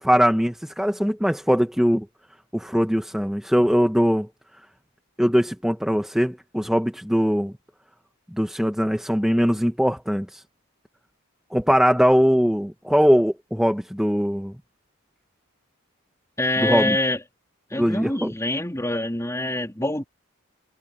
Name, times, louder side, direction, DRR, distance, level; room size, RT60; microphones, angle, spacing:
voice 1, 0.0-2.0 2.5-4.3 5.2-7.5 8.4-10.4 11.5-14.5 16.6-17.0 17.8-18.3, equal, ahead, 1.3 m, -21 dB
voice 2, 16.4-17.2 17.7-20.0, left 1 dB, 15° left, 3.6 m, -25 dB
head